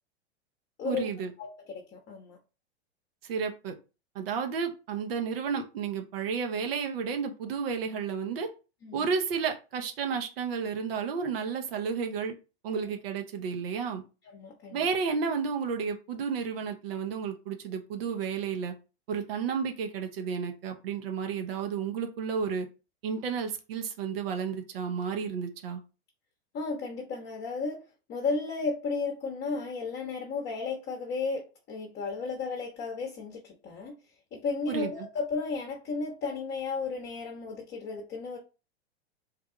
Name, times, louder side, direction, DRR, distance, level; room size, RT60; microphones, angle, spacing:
voice 1, 0.8-1.3 3.2-3.7 4.1-8.5 8.9-12.3 12.6-14.0 14.7-18.7 19.1-22.7 23.0-25.8 34.7-34.9, right 6 dB, 60° right, 0.9 m, -32 dB
voice 2, 1.4-2.4 8.8-9.0 12.7-12.9 14.2-14.8 26.5-27.8 28.1-31.4 31.7-34.0 34.3-38.4, left 4 dB, 30° left, 0.9 m, -34 dB
3.4 x 2.3 x 3.7 m
hypercardioid pair, 110°, 33 cm